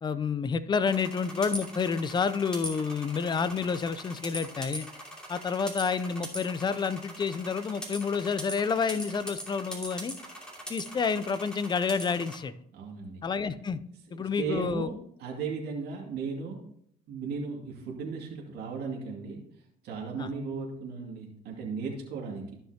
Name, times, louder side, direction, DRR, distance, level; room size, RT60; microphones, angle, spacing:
voice 1, 0.0-4.9 5.3-10.1 10.7-12.5 13.2-13.8 14.1-14.9 20.2-20.3, left 5 dB, 25° left, 14 dB, 0.5 m, -29 dB
sound 1, 0.9-12.4, equal, 5° left, 2.8 m, -41 dB
voice 2, 12.7-13.2 14.1-14.9 15.2-16.6 17.1-19.4 19.8-22.5, right 5 dB, 75° right, -1 dB, 2.3 m, -36 dB
14.5 x 5.7 x 2.9 m, 0.70 s
cardioid pair, 110°, 17 cm